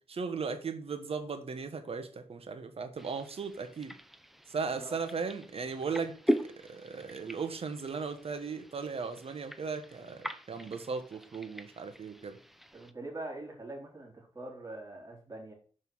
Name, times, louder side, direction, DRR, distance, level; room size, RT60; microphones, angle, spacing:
voice 1, 0.1-3.9 4.5-6.1 6.4-12.4, right 5 dB, 55° right, 1.3 m, -37 dB
sound 1, 3.0-12.9, equal, ahead, 0.7 m, -40 dB
voice 2, 12.7-15.5, right 2 dB, 30° right, 3.7 m, -43 dB
5.6 x 5.5 x 6.2 m
cardioid pair, 70°, 12 cm